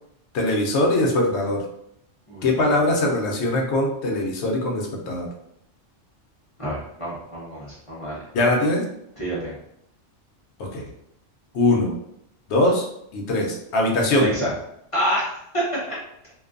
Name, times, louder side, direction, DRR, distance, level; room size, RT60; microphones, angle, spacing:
voice 1, 0.3-1.6 2.4-5.3 8.3-8.8 10.6-10.8 11.5-11.9 12.5-12.9 13.1-14.3, left 1 dB, 65° left, 0 dB, 0.8 m, -21 dB
voice 2, 6.6-8.3 9.2-9.6 14.1-14.5 14.9-16.0, equal, 35° left, -8 dB, 0.7 m, -27 dB
2.5 x 2.2 x 2.4 m, 0.76 s
omnidirectional pair, 1.3 m